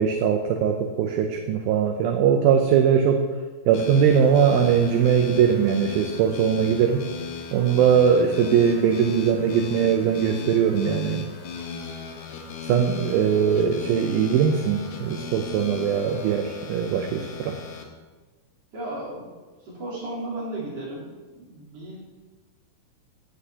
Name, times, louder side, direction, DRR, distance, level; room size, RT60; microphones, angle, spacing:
voice 1, 0.0-3.2 3.7-7.0 7.5-11.2 12.6-17.6, right 7 dB, 80° right, 4 dB, 2.2 m, -21 dB
sound 1, 3.7-17.8, left 5 dB, 75° left, 1.7 m, -37 dB
voice 2, 18.7-19.3 19.6-21.1 21.3-22.0, right 1 dB, 40° right, -8 dB, 4.4 m, -34 dB
14.5 x 8.6 x 2.9 m, 1.3 s
omnidirectional pair, 4.8 m